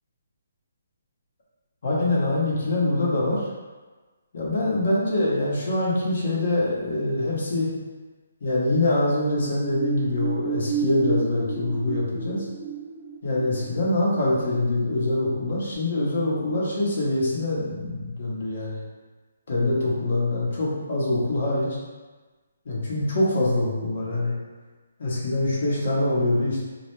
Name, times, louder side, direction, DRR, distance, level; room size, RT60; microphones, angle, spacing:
voice 1, 1.8-3.5 4.3-7.7 8.4-12.5 13.2-18.8 19.5-21.7 22.6-24.3 25.0-26.6, left 2 dB, 55° left, -5 dB, 0.8 m, -24 dB
sound 1, 9.1-15.4 15.7-15.8, right 7 dB, 25° right, 0.3 m, -33 dB
2.3 x 2.1 x 3.0 m, 1.3 s
hypercardioid pair, 165°, 0 cm